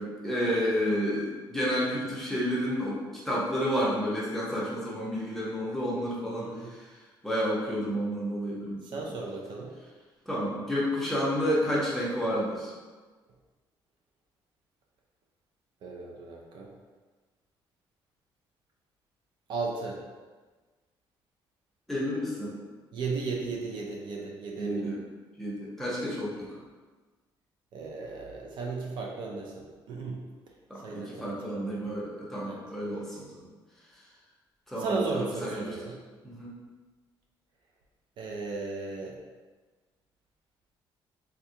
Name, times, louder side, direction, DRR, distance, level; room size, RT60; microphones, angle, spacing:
voice 1, 0.0-3.0 3.2-8.8 10.3-12.7 21.9-22.6 24.6-25.0 25.4-26.5 30.7-33.4 34.7-35.6 36.2-36.6, equal, 5° left, -7 dB, 0.7 m, -30 dB
voice 2, 6.4-6.7 8.8-9.7 15.8-16.7 19.5-20.0 22.9-24.9 27.7-30.2 30.8-31.7 32.5-32.6 34.8-36.0 38.2-39.2, right 4 dB, 65° right, -1 dB, 0.5 m, -35 dB
3.4 x 2.3 x 2.7 m, 1.3 s
cardioid pair, 145°, 9 cm